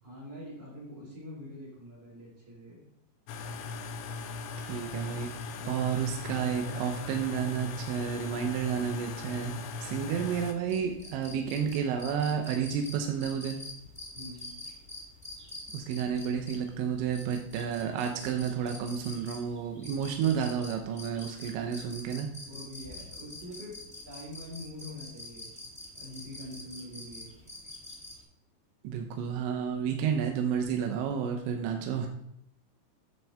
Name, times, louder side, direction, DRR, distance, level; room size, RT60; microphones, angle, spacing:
voice 1, 0.0-2.8 5.6-5.9 6.2-7.2 14.1-14.5 21.3-21.5 22.1-23.8 24.1-25.5 25.9-27.3 31.5-32.1, left 1 dB, 35° right, -7 dB, 4.7 m, -45 dB
sound 1, 3.3-10.5, left 4 dB, 85° left, 3.0 m, -39 dB
voice 2, 4.6-5.3 5.7-13.6 15.7-22.3 28.8-32.1, right 7 dB, 85° right, 3 dB, 3.2 m, -31 dB
sound 2, 10.6-28.2, left 2 dB, ahead, 2.2 m, -46 dB
11.5 x 7.2 x 3.5 m, 0.76 s
omnidirectional pair, 5.1 m